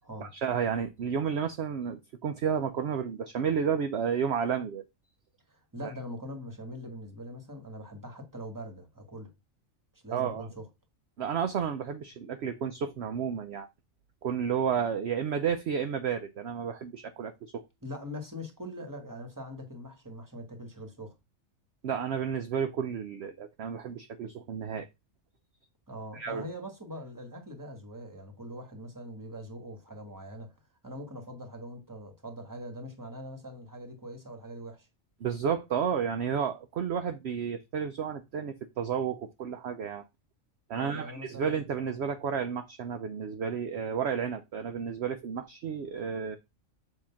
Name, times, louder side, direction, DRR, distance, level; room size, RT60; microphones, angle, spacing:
voice 1, 0.2-4.8 10.1-10.5 11.2-13.7 14.2-17.6 21.8-24.9 26.1-26.5 35.2-40.0 40.7-46.4, right 7 dB, 60° right, 0.8 m, -31 dB
voice 2, 5.5-9.3 9.9-10.7 17.8-21.1 25.9-30.5 30.8-34.9 40.7-41.5, equal, 15° right, 1.4 m, -42 dB
7.4 x 2.9 x 5.7 m
omnidirectional pair, 1.4 m